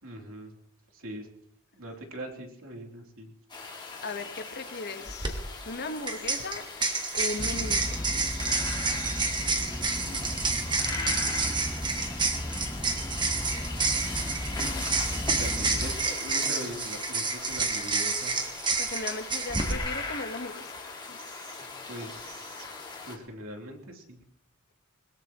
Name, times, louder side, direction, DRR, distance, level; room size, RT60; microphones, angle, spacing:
voice 1, 0.0-0.5 0.9-1.3 1.7-3.3 9.3-10.4 10.8-11.7 12.6-12.7 14.6-18.4 21.1-22.7 23.0-24.2, right 1 dB, 65° right, 1 dB, 3.4 m, -42 dB
sound 1, 3.5-23.2, left 4 dB, 20° left, 2.4 m, -40 dB
voice 2, 4.0-5.4 5.6-6.6 7.1-8.0 18.8-20.7 21.1-21.2, left 2 dB, 50° left, 8 dB, 1.4 m, -37 dB
sound 2, 5.1-5.3 6.1-19.7, right 4 dB, 20° right, 1.6 m, -29 dB
sound 3, 7.4-15.9, left 1 dB, ahead, 1.1 m, -35 dB
21.5 x 21.0 x 3.1 m, 0.70 s
head